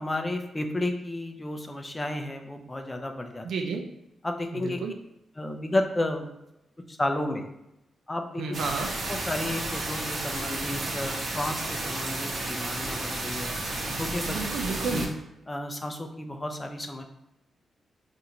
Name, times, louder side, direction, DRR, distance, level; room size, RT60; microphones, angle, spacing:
voice 1, 0.0-3.5 4.2-4.8 5.4-6.3 6.9-7.5 8.1-8.4 9.1-13.6 14.0-14.4 14.9-15.0 15.5-17.0, left 1 dB, 20° left, 5 dB, 0.5 m, -32 dB
voice 2, 3.4-3.9 4.5-4.9 8.4-8.9 14.3-15.0, right 4 dB, 80° right, 4 dB, 0.5 m, -31 dB
sound 1, 8.5-15.1, right 2 dB, 55° right, 0.9 m, -32 dB
5.4 x 2.5 x 2.9 m, 0.88 s
cardioid pair, 105°, 0 cm